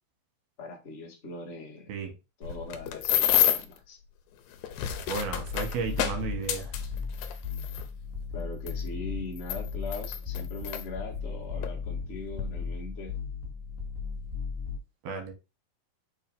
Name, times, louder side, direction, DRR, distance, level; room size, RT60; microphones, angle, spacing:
voice 1, 0.6-1.9 2.4-4.0 8.3-13.2, left 2 dB, 35° left, 1.0 m, -41 dB
sound 1, 2.4-3.8 4.5-7.8 8.7-8.8 9.4-10.8 11.6-11.8 12.1-12.4, left 11 dB, 80° left, 2.4 m, -29 dB
sound 2, 5.1-14.8, left 5 dB, 10° left, 0.7 m, -36 dB
voice 2, 5.1-6.8 15.0-15.3, right 5 dB, 90° right, 3.2 m, -33 dB
6.5 x 2.9 x 5.2 m
omnidirectional pair, 4.2 m